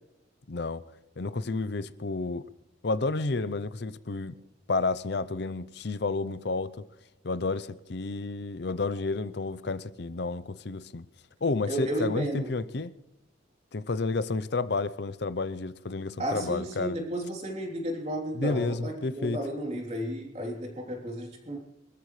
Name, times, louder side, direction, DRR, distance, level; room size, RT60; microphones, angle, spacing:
voice 1, 0.5-0.8 1.2-2.5 2.8-4.3 4.7-6.9 7.2-11.1 11.4-12.9 13.7-17.0 18.3-19.4, left 3 dB, 55° left, 0.6 m, -31 dB
voice 2, 11.7-12.5 16.2-21.6, equal, 35° right, 3.3 m, -33 dB
24.5 x 14.0 x 3.2 m
head